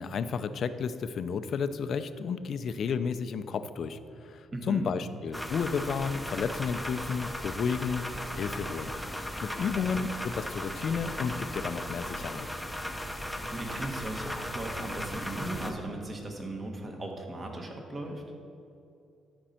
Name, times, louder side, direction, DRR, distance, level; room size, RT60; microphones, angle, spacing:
voice 1, 0.0-8.0 8.3-8.9 9.4-12.5, left 6 dB, 60° left, 11 dB, 0.5 m, -32 dB
voice 2, 4.5-4.9 9.7-9.8 13.5-18.2, right 2 dB, 30° right, 2 dB, 1.5 m, -37 dB
sound 1, 5.3-15.7, equal, ahead, 0.7 m, -37 dB
12.5 x 5.4 x 4.3 m, 2.6 s
cardioid pair, 90°, 0 cm